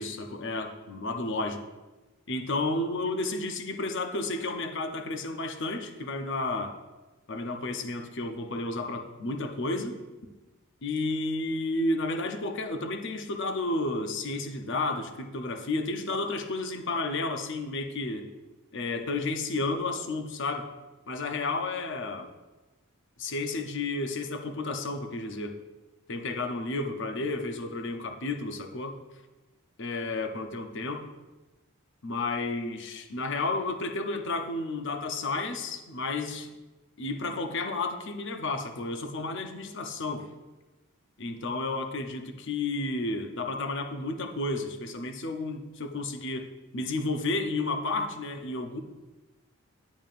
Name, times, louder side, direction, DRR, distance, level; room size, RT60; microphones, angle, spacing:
voice 1, 0.0-1.6 2.3-6.7 7.3-10.0 10.8-18.3 18.7-20.7 21.1-22.3 23.2-25.6 26.1-29.0 29.8-31.0 32.0-36.5 37.0-40.3 41.2-48.8, left 2 dB, 55° left, 5 dB, 0.7 m, -32 dB
10.5 x 7.2 x 2.5 m, 1.1 s
head